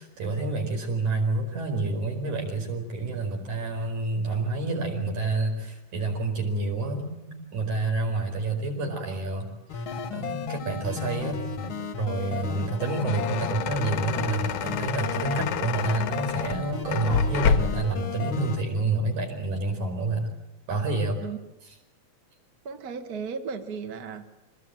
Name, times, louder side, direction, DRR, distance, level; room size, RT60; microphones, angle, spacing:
voice 1, 0.0-20.3 20.7-21.2 21.7-21.8, right 3 dB, 85° right, 2 dB, 6.3 m, -29 dB
sound 1, 9.7-18.6, left 6 dB, 50° left, 1.8 m, -34 dB
sound 2, 12.7-17.9, left 7 dB, 75° left, 2.4 m, -29 dB
voice 2, 22.7-24.2, right 5 dB, 40° right, 6 dB, 1.8 m, -35 dB
26.5 x 20.5 x 9.0 m, 0.97 s
omnidirectional pair, 3.3 m